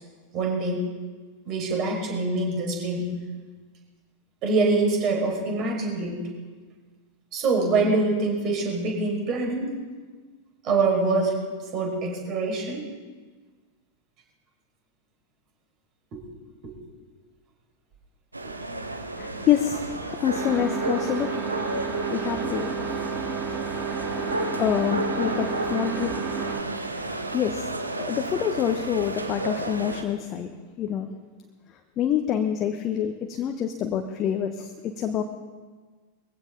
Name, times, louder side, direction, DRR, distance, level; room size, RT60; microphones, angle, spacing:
voice 1, 0.3-0.8 1.5-3.1 4.4-6.2 7.3-9.8 10.6-11.3 11.7-12.8 16.1-16.2 16.6-16.7 18.4-18.5, right 3 dB, 35° right, 0 dB, 5.3 m, -25 dB
sound 1, 18.3-30.0, right 2 dB, 80° right, 1.2 m, -32 dB
voice 2, 19.2-21.4 22.1-22.7 23.6-24.0 24.6-26.2 26.5-30.5 30.8-31.1 32.0-35.2, left 9 dB, 30° left, 5 dB, 1.1 m, -27 dB
sound 2, 20.3-26.6, right 6 dB, 20° right, 6.9 m, -31 dB
21.5 x 15.5 x 3.9 m, 1.4 s
figure-of-eight pair, 90°, 0 cm